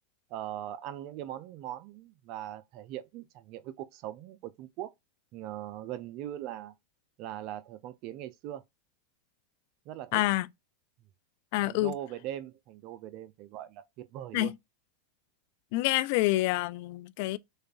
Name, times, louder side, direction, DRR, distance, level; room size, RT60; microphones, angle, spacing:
voice 1, 0.3-4.9 5.3-6.7 7.2-8.6 9.9-10.2 11.6-14.5, right 12 dB, 50° right, 0.5 m, -40 dB
voice 2, 10.1-10.5 11.5-11.9 14.3-14.6 15.7-17.4, left 18 dB, 60° left, 0.4 m, -27 dB
6.4 x 2.4 x 2.3 m
hypercardioid pair, 105°, 0 cm